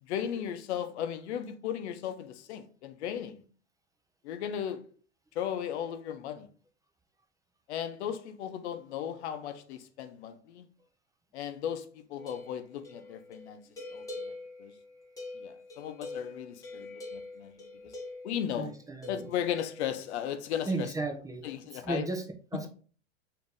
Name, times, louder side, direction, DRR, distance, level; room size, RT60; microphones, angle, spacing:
voice 1, 0.0-3.4 4.2-4.9 5.3-6.5 7.7-10.6 11.3-13.6 13.9-14.3 14.6-14.7 15.3-17.5 17.8-17.9 18.2-18.7 19.1-20.9 21.4-22.1, left 9 dB, 70° left, 0.7 m, -36 dB
sound 1, 12.2-18.5 19.0-19.9, left 2 dB, 10° left, 1.3 m, -44 dB
voice 2, 18.6-19.3 20.7-21.5 21.7-22.3 22.5-22.7, right 3 dB, 10° right, 0.5 m, -34 dB
5.2 x 2.8 x 3.5 m
hypercardioid pair, 95°, 35 cm